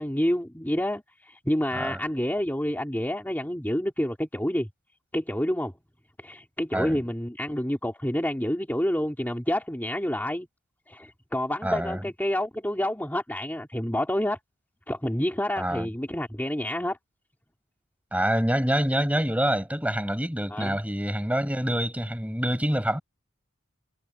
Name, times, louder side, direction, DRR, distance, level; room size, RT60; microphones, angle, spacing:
voice 1, 0.0-4.7 5.1-5.7 6.2-10.5 10.9-14.4 14.9-17.0 20.5-20.8, left 1 dB, 10° left, 3.4 m, -28 dB
voice 2, 11.6-12.1 15.6-15.9 18.1-23.0, equal, 5° right, 5.9 m, -26 dB
head